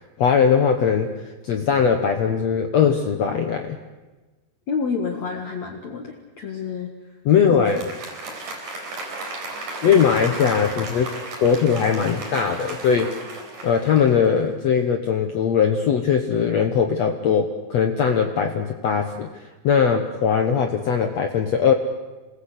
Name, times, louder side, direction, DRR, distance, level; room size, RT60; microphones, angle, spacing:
voice 1, 0.2-1.1 1.4-3.8 7.2-7.9 9.8-11.1 11.4-13.1 13.6-21.7, left 7 dB, 80° left, 5 dB, 1.5 m, -20 dB
voice 2, 4.7-6.9 7.5-7.8, left 5 dB, 55° left, 3 dB, 2.3 m, -29 dB
Applause, 7.5-14.5, right 2 dB, 55° right, 5.7 m, -34 dB
27.0 x 20.0 x 8.2 m, 1.2 s
omnidirectional pair, 4.9 m